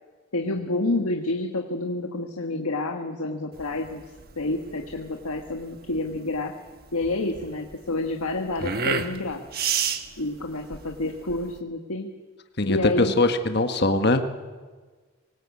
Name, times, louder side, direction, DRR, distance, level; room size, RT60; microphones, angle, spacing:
voice 1, 0.3-4.0 4.4-6.5 6.9-9.4 10.2-12.1 12.7-13.1, left 2 dB, 90° left, 4 dB, 1.5 m, -29 dB
sound 1, 3.5-11.6, right 6 dB, 45° right, 1.3 m, -31 dB
voice 2, 12.6-14.3, left 2 dB, 50° left, 7 dB, 1.4 m, -22 dB
24.5 x 19.5 x 8.5 m, 1.4 s
head